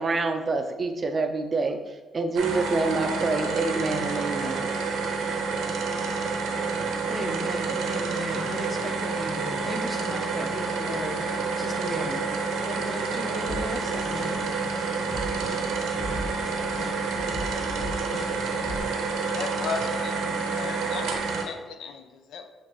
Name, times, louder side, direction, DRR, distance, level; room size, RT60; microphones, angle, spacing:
voice 1, 0.0-4.7, right 3 dB, 40° right, 6 dB, 0.4 m, -27 dB
sound 1, 2.4-21.4, right 4 dB, 85° right, 0.7 m, -29 dB
voice 2, 7.1-12.3 12.6-14.9, equal, 10° left, 2 dB, 0.8 m, -36 dB
sound 2, 13.4-18.8, left 1 dB, 35° left, 1.2 m, -38 dB
voice 3, 19.2-21.2 21.4-22.5, left 5 dB, 75° left, 7 dB, 0.4 m, -36 dB
6.7 x 2.5 x 3.0 m, 1.2 s
cardioid pair, 90°, 0 cm